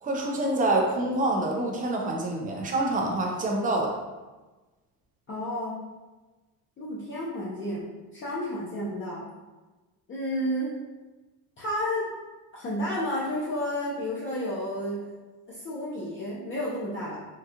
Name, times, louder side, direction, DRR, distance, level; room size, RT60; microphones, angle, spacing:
voice 1, 0.0-3.9, right 2 dB, 20° right, 1 dB, 0.4 m, -26 dB
voice 2, 5.3-5.8 6.8-9.2 10.1-10.7 11.6-12.1 12.5-15.0 15.5-17.2, left 1 dB, 30° left, -7 dB, 0.6 m, -31 dB
3.6 x 2.3 x 2.7 m, 1.2 s
cardioid pair, 145°, 41 cm